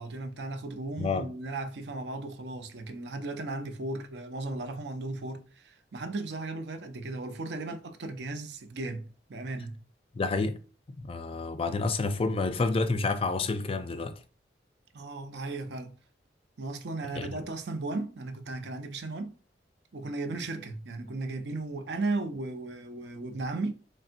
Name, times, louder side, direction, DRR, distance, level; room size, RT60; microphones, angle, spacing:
voice 1, 0.0-9.8 14.9-16.0 16.6-19.4 19.9-23.7, right 2 dB, 70° right, 0.6 m, -36 dB
voice 2, 10.2-10.6 11.0-14.1 17.1-17.4, left 3 dB, 30° left, 0.4 m, -29 dB
4.1 x 3.3 x 2.5 m
head